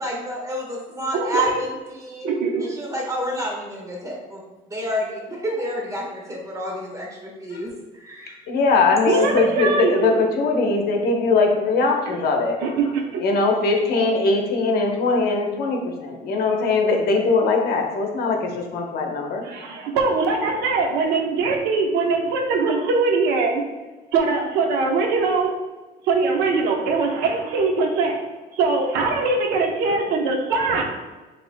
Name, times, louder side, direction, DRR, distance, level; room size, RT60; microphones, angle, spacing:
voice 1, 0.0-2.3 2.6-4.4 4.7-7.7 8.0-8.4 9.1-9.2, equal, 20° right, -1 dB, 1.3 m, -30 dB
voice 2, 1.1-1.6 2.2-2.6 9.1-10.2 12.1-12.2 12.6-13.2 19.4-23.6 24.1-25.5 26.0-28.2 28.5-30.8, right 4 dB, 90° right, 2 dB, 0.8 m, -22 dB
voice 3, 8.5-12.6 13.2-19.4, left 3 dB, 65° left, 2 dB, 0.9 m, -21 dB
7.6 x 2.9 x 2.2 m, 1.2 s
cardioid pair, 110°, 17 cm